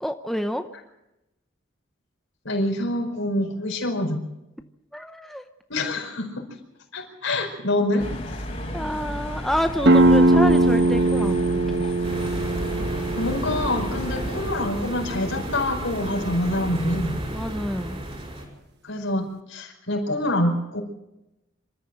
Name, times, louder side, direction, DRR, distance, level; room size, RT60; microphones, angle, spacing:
voice 1, 0.0-0.6 4.9-5.4 8.7-11.9 17.3-18.0, equal, ahead, 6 dB, 0.7 m, -28 dB
voice 2, 2.4-4.2 5.7-6.5 6.9-8.4 13.1-17.2 18.8-20.8, left 1 dB, 75° left, 1 dB, 5.0 m, -26 dB
sound 1, 8.0-14.5, left 1 dB, 35° left, 3.6 m, -33 dB
sound 2, 9.8-15.3, right 2 dB, 55° right, 1.3 m, -21 dB
sound 3, 12.0-18.5, right 1 dB, 30° right, 5.2 m, -33 dB
26.0 x 13.5 x 7.8 m, 0.95 s
head